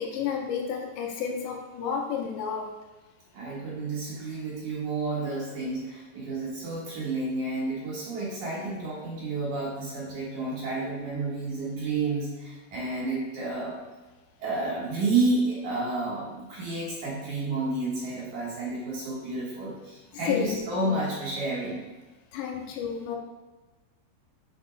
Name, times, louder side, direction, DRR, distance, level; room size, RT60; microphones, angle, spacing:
voice 1, 0.0-2.7 20.1-21.0 22.3-23.2, left 7 dB, 85° left, 1 dB, 2.9 m, -31 dB
voice 2, 3.3-13.8 14.4-21.8, right 3 dB, 55° right, -6 dB, 2.6 m, -30 dB
7.4 x 6.6 x 2.4 m, 1.2 s
omnidirectional pair, 5.1 m